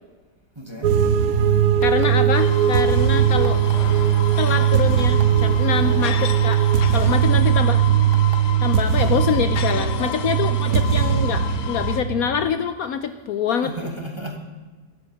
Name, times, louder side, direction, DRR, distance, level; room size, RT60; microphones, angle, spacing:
voice 1, 0.5-1.0 2.0-2.1 3.3-3.4 4.2-4.7 5.7-6.2 6.8-7.4 9.4-10.9 13.6-14.4, right 1 dB, 15° right, 3 dB, 1.3 m, -36 dB
sound 1, 0.8-12.4, right 9 dB, 65° right, 1.2 m, -19 dB
voice 2, 1.8-3.6 4.4-6.6 6.9-7.8 8.6-13.7, left 7 dB, 65° left, 10 dB, 1.0 m, -25 dB
sound 2, 1.8-2.3 3.4-3.9 5.0-5.2 6.0-6.1 6.5-6.7 7.1-7.2 8.1-8.4 9.6-9.8, right 5 dB, 40° right, 1.0 m, -40 dB
sound 3, 2.3-12.0, left 10 dB, 90° left, 1.4 m, -33 dB
13.0 x 11.0 x 7.1 m, 1.4 s
omnidirectional pair, 1.8 m